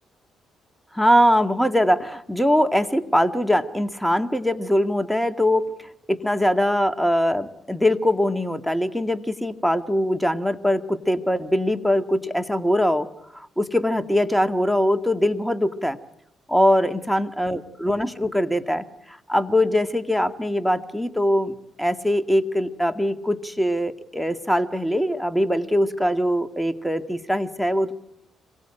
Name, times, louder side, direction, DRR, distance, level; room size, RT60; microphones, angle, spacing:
voice 1, 0.9-5.7 6.1-13.1 13.3-16.0 16.5-27.9, equal, ahead, 8 dB, 2.0 m, -22 dB
26.0 x 22.5 x 9.0 m, 0.76 s
supercardioid pair, 65°, 0 cm